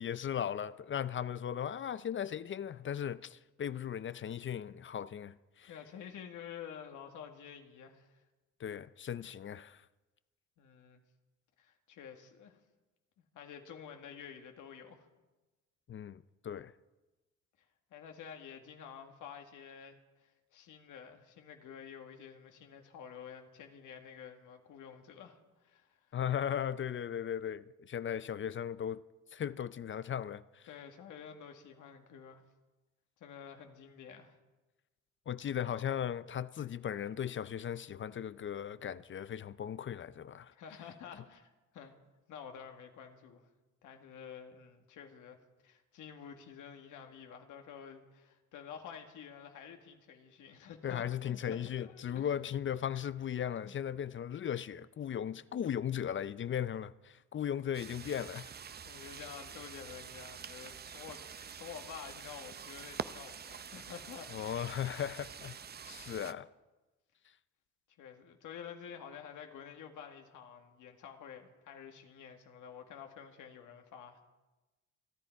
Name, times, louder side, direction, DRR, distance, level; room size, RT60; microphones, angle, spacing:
voice 1, 0.0-5.7 8.6-9.8 15.9-16.7 26.1-29.0 29.3-30.7 35.3-40.5 50.8-58.5 64.3-65.6 65.8-66.5, left 9 dB, 40° left, 0.5 m, -37 dB
voice 2, 5.7-8.1 10.6-11.0 11.6-12.6 13.3-15.1 17.9-26.1 30.7-32.4 33.2-34.4 40.5-41.9 42.3-43.4 43.8-45.4 45.6-52.5 53.6-53.7 58.9-64.7 68.0-74.2, left 7 dB, 85° left, 1.9 m, -50 dB
sound 1, 57.7-66.3, right 7 dB, 35° right, 0.6 m, -46 dB
28.0 x 10.0 x 4.6 m
cardioid pair, 90°, 30 cm